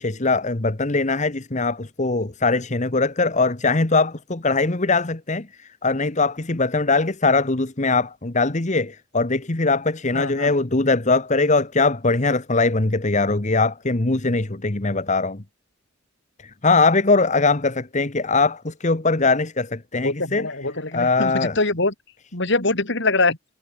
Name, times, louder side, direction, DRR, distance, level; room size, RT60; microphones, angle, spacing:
voice 1, 0.0-5.5 5.8-15.4 16.6-20.5 20.9-21.5, left 3 dB, 35° left, 1.3 m, -21 dB
voice 2, 10.1-10.5 19.9-21.9 22.3-23.4, left 2 dB, 65° left, 4.5 m, -23 dB
head